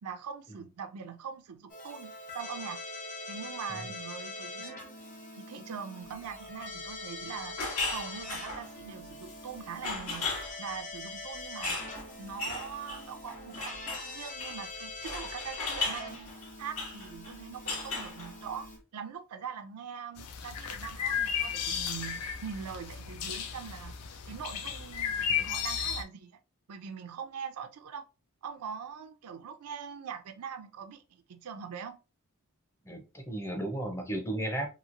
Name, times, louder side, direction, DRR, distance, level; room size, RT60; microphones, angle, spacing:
voice 1, 0.0-2.8 3.3-4.9 5.4-7.6 7.9-11.8 12.2-16.3 16.6-24.0 24.2-26.4 26.7-28.0 28.4-32.0, right 7 dB, 80° right, 0.4 m, -42 dB
Keyboard (musical), 1.7-18.8, left 2 dB, 35° left, 0.9 m, -43 dB
sound 1, 7.6-8.7 9.2-9.5 9.8-10.5 11.6-14.1 14.4-14.6 15.0-17.4 17.7-18.5, left 3 dB, 75° left, 1.0 m, -36 dB
sound 2, 20.2-26.0, left 8 dB, 90° left, 0.5 m, -34 dB
voice 2, 32.8-34.7, right 1 dB, 10° left, 0.5 m, -35 dB
3.0 x 2.8 x 2.5 m
head